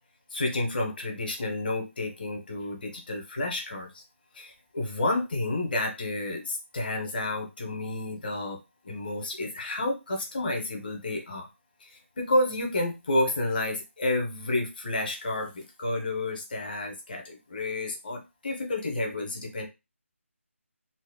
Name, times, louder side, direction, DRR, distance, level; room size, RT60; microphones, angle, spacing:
voice 1, 0.3-4.0 4.3-8.6 8.8-11.5 11.8-11.9 12.2-19.7, left 2 dB, 40° left, 2 dB, 0.9 m, -30 dB
4.0 x 2.1 x 2.3 m, 0.24 s
figure-of-eight pair, 155°, 7 cm